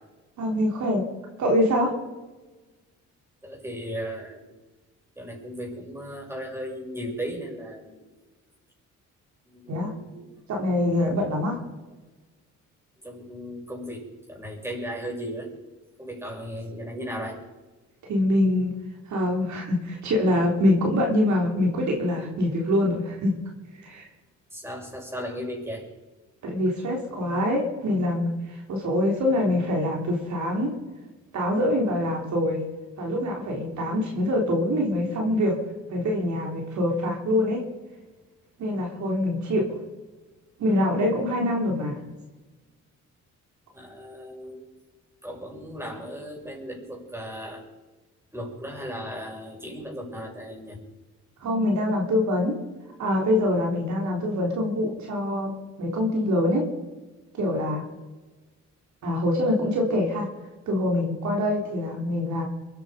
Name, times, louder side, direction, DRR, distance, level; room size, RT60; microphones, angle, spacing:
voice 1, 0.4-1.0 1.4-1.9 9.7-9.9 10.5-11.6 18.1-18.7 19.1-23.3 23.7-24.1 26.4-30.7 31.3-32.6 33.0-35.5 35.9-37.6 38.6-39.6 40.6-42.0 51.4-52.5 53.0-56.6 57.3-57.8 59.0-60.2 60.7-62.4, left 1 dB, 70° right, 0 dB, 4.0 m, -24 dB
voice 2, 3.4-4.6 5.2-8.1 9.5-10.3 13.0-15.5 16.0-17.4 24.5-25.9 43.7-44.6 45.2-47.6 48.3-50.8, equal, 10° right, -1 dB, 6.9 m, -36 dB
23.5 x 10.0 x 5.3 m, 1.2 s
cardioid pair, 90°, 30 cm